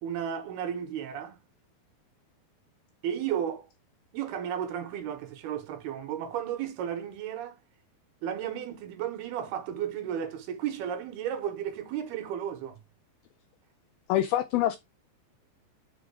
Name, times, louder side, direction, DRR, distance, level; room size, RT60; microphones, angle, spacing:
voice 1, 0.0-1.4 3.0-3.7 4.1-7.6 8.2-12.8, right 9 dB, 70° right, 3.1 m, -33 dB
voice 2, 14.1-14.8, left 13 dB, 85° left, 2.1 m, -25 dB
6.3 x 4.6 x 6.0 m
omnidirectional pair, 5.0 m